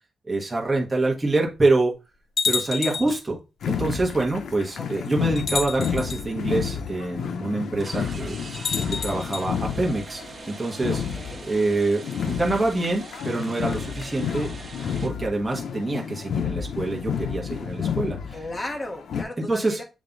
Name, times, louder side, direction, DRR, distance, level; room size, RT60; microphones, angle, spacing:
voice 1, 0.3-1.9 2.4-3.4 3.7-8.3 8.8-11.0 11.4-14.5 15.0-18.4 19.5-19.8, right 2 dB, 15° right, 1.4 m, -25 dB
sound 1, 0.7-0.8 1.6-1.7 2.4-3.2 4.4-4.5 5.4-6.2 8.5-9.5, left 5 dB, 60° left, 1.2 m, -29 dB
sound 2, 3.6-19.2, left 7 dB, 80° left, 0.7 m, -31 dB
voice 2, 4.8-5.1 10.9-11.4 18.3-19.8, left 1 dB, 20° left, 1.3 m, -35 dB
sound 3, 7.8-15.1, right 4 dB, 40° right, 1.4 m, -43 dB
7.3 x 3.3 x 3.9 m
wide cardioid pair, 165°, 0 cm